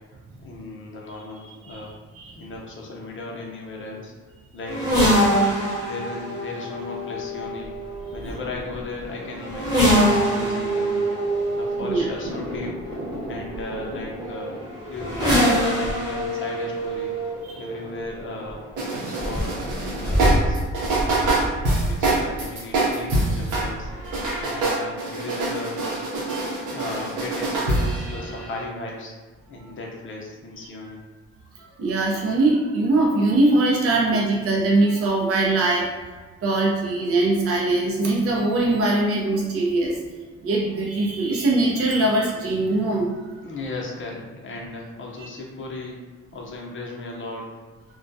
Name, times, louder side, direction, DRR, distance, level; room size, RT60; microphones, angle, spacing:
voice 1, 0.4-1.9 2.3-4.1 4.5-5.4 5.8-7.7 8.1-11.0 11.5-12.7 13.3-14.6 14.9-17.1 17.6-20.6 21.1-21.4 21.7-23.9 24.4-25.8 26.7-29.1 29.5-31.0 43.4-46.0 46.3-47.5, left 2 dB, 40° left, -2 dB, 0.6 m, -36 dB
sound 1, 4.7-22.4 23.5-24.4, equal, 15° right, 1.2 m, -25 dB
sound 2, 18.8-23.7 24.0-28.6, right 2 dB, 85° right, 0.7 m, -25 dB
voice 2, 31.6-35.9 36.4-40.0 40.4-43.3, right 2 dB, 50° right, -3 dB, 0.6 m, -22 dB
2.2 x 2.2 x 2.5 m, 1.3 s
cardioid pair, 90°, 30 cm